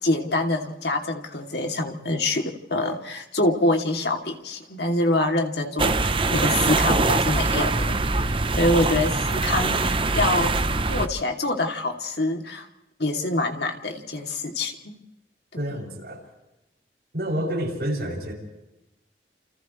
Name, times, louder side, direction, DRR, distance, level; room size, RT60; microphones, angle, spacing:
voice 1, 0.0-8.0 8.2-10.6 10.9-12.7 13.0-15.0 15.5-15.8, left 2 dB, 75° left, 3 dB, 2.8 m, -25 dB
sound 1, 5.8-11.1, right 3 dB, 30° right, 0.8 m, -23 dB
voice 2, 15.6-16.2 17.1-18.3, equal, 65° right, -2 dB, 7.2 m, -28 dB
29.5 x 29.5 x 3.2 m, 0.92 s
head